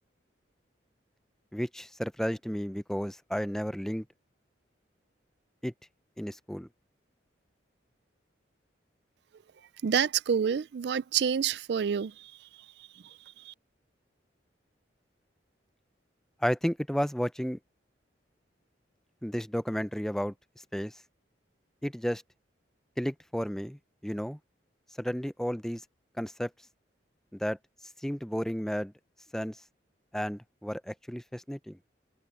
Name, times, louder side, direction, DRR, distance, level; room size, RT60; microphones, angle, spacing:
voice 1, 1.5-4.0 5.6-5.7 6.2-6.7 16.4-17.6 19.2-20.3 20.7-21.0 21.8-22.2 23.0-24.4 25.0-25.8 26.2-26.5 27.3-27.6 28.0-28.9 29.3-29.6 30.1-31.8, equal, 5° left, 0.5 m, -32 dB
voice 2, 9.8-12.1 13.5-13.6, right 7 dB, 60° right, 0.4 m, -27 dB
head